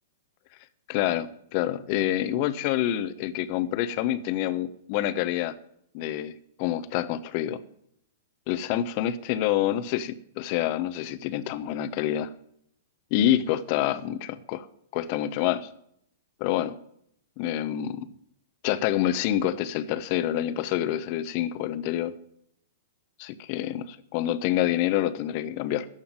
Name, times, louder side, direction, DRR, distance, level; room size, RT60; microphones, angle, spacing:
voice 1, 0.9-5.5 5.9-6.3 6.6-7.6 8.5-12.3 13.1-14.6 14.9-15.7 16.4-16.7 17.4-18.1 18.6-22.1 23.2-25.9, left 12 dB, 45° left, 13 dB, 1.0 m, -27 dB
14.0 x 5.7 x 9.0 m, 0.71 s
hypercardioid pair, 110°, 0 cm